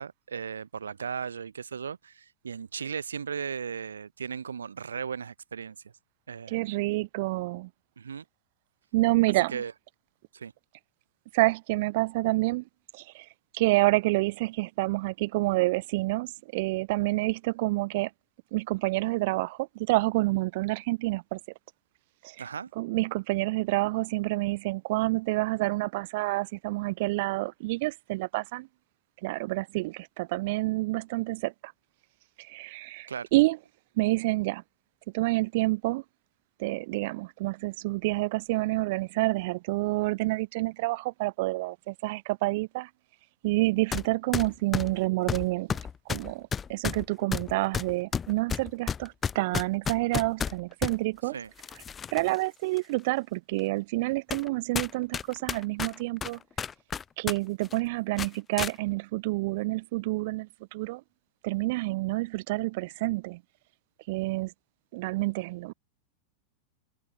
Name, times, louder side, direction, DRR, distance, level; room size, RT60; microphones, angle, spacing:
voice 1, 0.0-5.8 6.3-6.8 8.0-8.2 9.5-9.7 10.3-10.5 22.4-22.7 33.1-33.3 51.3-51.5, right 6 dB, 70° right, 3.0 m, -36 dB
voice 2, 6.5-7.7 8.9-9.6 11.3-12.6 12.9-13.3 13.5-18.1 18.5-21.4 22.2-22.5 22.8-28.7 29.2-31.7 32.4-33.6 34.0-34.6 35.1-36.0 36.6-42.9 43.4-45.7 46.1-51.4 52.1-56.4 57.2-61.0 61.4-63.4 64.1-64.5 64.9-65.7, right 21 dB, 50° right, 0.3 m, -28 dB
sound 1, 43.9-44.1 44.3-51.0 51.6-52.3 52.8-52.9 53.6-53.7 54.3-54.5 54.7-57.4 57.6-57.8 58.2-58.7, left 7 dB, 20° left, 0.5 m, -32 dB
figure-of-eight pair, 90°, 0 cm